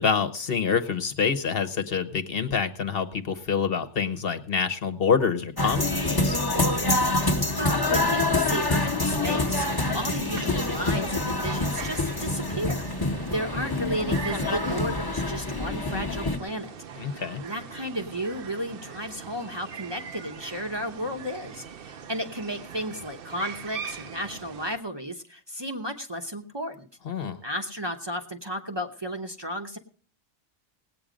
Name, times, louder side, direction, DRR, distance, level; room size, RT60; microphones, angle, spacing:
voice 1, 0.0-6.4 17.0-17.4 27.1-27.4, left 6 dB, 55° left, 8 dB, 1.2 m, -26 dB
sound 1, 5.6-16.4, left 2 dB, 20° left, 1.0 m, -26 dB
voice 2, 7.6-9.7 9.9-16.7 17.4-26.9 27.4-29.8, equal, 25° right, 2 dB, 0.9 m, -33 dB
sound 2, 9.1-24.8, right 7 dB, 55° right, 0.9 m, -42 dB
18.5 x 8.7 x 5.1 m, 0.44 s
omnidirectional pair, 1.2 m